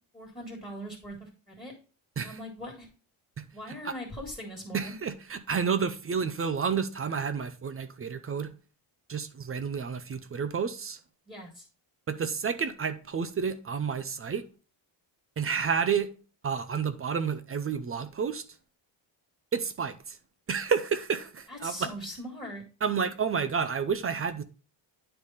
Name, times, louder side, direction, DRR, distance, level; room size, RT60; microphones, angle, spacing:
voice 1, 0.1-1.7 2.2-2.9 3.5-4.9 11.3-11.6 21.5-22.6, equal, 10° left, 1.8 m, -41 dB
voice 2, 4.7-8.5 9.1-11.0 12.1-14.4 15.4-16.1 16.4-18.4 19.5-20.2 20.5-21.9 22.8-24.4, right 6 dB, 30° right, 0.5 m, -30 dB
9.9 x 3.3 x 4.1 m
cardioid pair, 140°, 48 cm